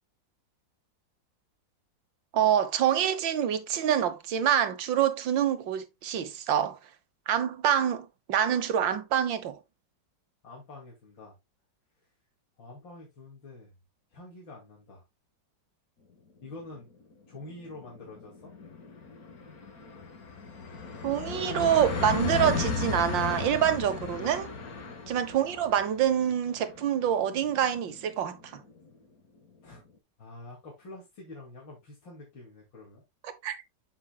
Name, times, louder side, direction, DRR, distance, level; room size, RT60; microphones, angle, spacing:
voice 1, 2.3-6.8 7.3-9.6 21.0-24.5 25.1-28.6 33.2-33.6, right 9 dB, 80° right, 1.8 m, -26 dB
voice 2, 10.4-11.4 12.6-13.7 14.1-15.0 16.4-16.9 17.3-18.5 24.6-24.9 29.6-29.8 30.2-33.0, left 2 dB, 85° left, 3.2 m, -47 dB
sound 1, 16.6-16.7 17.0-17.1 17.3-28.8, left 4 dB, 50° left, 2.0 m, -36 dB
9.0 x 7.6 x 2.3 m
omnidirectional pair, 2.0 m